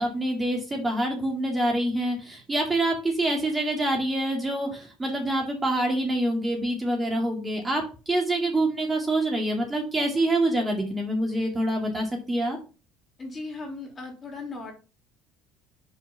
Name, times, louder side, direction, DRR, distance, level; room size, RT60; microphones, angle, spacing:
voice 1, 0.0-12.6, right 1 dB, 20° right, 1 dB, 2.1 m, -26 dB
voice 2, 13.2-14.7, left 3 dB, 30° left, 1 dB, 3.1 m, -37 dB
5.6 x 4.5 x 5.6 m, 0.34 s
supercardioid pair, 100°, 0 cm